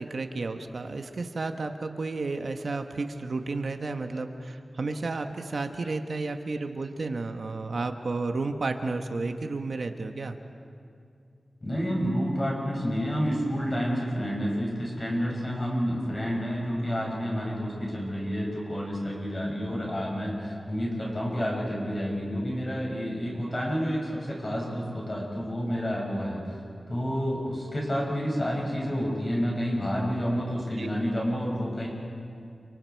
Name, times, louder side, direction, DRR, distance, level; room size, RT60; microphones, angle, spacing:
voice 1, 0.0-10.4 30.8-31.0, right 3 dB, 65° right, 6 dB, 1.2 m, -32 dB
voice 2, 11.6-26.4 26.9-31.9, equal, 30° left, -3 dB, 6.1 m, -29 dB
29.5 x 26.0 x 4.7 m, 2.4 s
wide cardioid pair, 80°, 0 cm